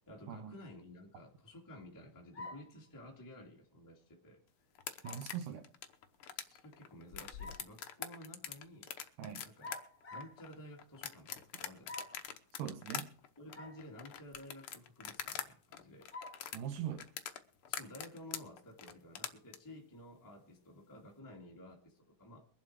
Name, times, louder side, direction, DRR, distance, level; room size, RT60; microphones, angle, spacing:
voice 1, 0.1-4.4 6.3-8.9 9.4-9.8 10.1-12.2 13.4-16.1 16.5-16.8 17.7-22.5, left 1 dB, 5° left, -1 dB, 2.1 m, -53 dB
sound 1, 2.3-2.8 5.0-5.3 7.1-7.7 9.6-10.4 11.8-12.3 13.5-13.8 14.3-14.4 16.1-16.5, left 3 dB, 25° left, 4.4 m, -47 dB
sound 2, 4.7-15.5 15.7-19.6, left 10 dB, 70° left, 1.3 m, -44 dB
voice 2, 5.0-5.7 9.2-9.5 12.5-13.1 16.5-17.0, right 9 dB, 80° right, 6 dB, 2.5 m, -41 dB
23.0 x 7.7 x 4.7 m, 0.43 s
omnidirectional pair, 3.8 m